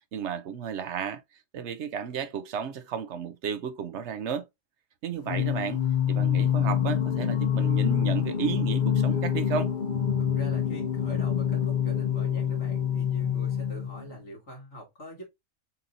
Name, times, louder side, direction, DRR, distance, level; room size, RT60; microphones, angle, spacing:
voice 1, 0.1-1.2 1.5-4.5 5.0-5.8 6.1-9.7, right 7 dB, 65° right, 0.9 m, -33 dB
Singing, 5.2-14.1, left 9 dB, 50° left, 0.7 m, -26 dB
voice 2, 10.2-15.3, right 2 dB, 85° left, 2.9 m, -44 dB
6.9 x 2.6 x 2.7 m
omnidirectional pair, 1.3 m